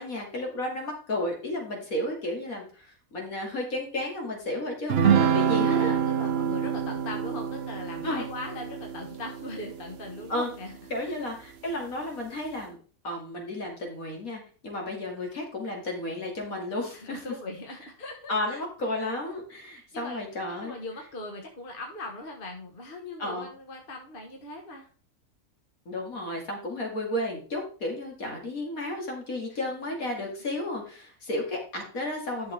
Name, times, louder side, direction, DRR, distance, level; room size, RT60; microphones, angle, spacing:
voice 1, 0.0-6.0 8.0-8.2 10.3-10.5 10.9-12.8 13.0-17.2 18.3-20.7 23.2-23.5 25.9-32.5, left 1 dB, 65° left, 0 dB, 2.8 m, -33 dB
sound 1, 4.9-10.6, right 8 dB, 65° right, 0.6 m, -27 dB
voice 2, 5.5-11.2 16.9-18.6 19.2-19.4 19.7-20.2 20.6-24.9 30.2-30.3, left 2 dB, 35° left, 1 dB, 1.5 m, -40 dB
11.0 x 6.4 x 3.4 m, 0.40 s
omnidirectional pair, 1.6 m